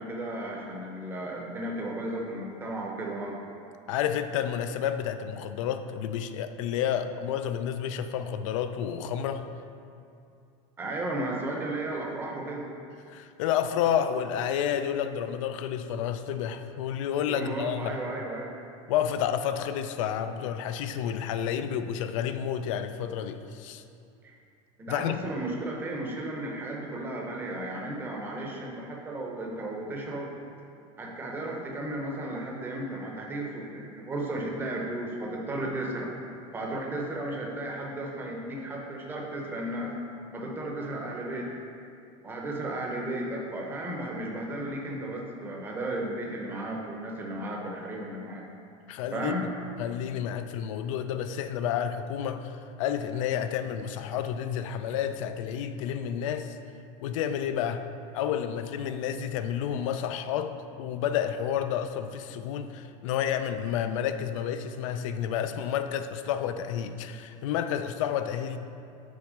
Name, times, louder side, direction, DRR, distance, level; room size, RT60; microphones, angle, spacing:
voice 1, 0.0-3.3 10.8-12.7 17.3-18.5 24.2-24.4 24.8-30.3 31.0-36.1 36.5-39.9 40.3-41.5 42.2-48.4 49.1-49.4, right 1 dB, 10° right, -1 dB, 0.7 m, -34 dB
voice 2, 3.9-9.5 13.1-18.0 18.9-23.8 24.9-25.2 48.9-49.4 49.8-56.6 57.0-57.8 58.1-68.6, left 9 dB, 75° left, 9 dB, 0.4 m, -30 dB
6.3 x 4.4 x 4.9 m, 2.5 s
supercardioid pair, 175°, 17 cm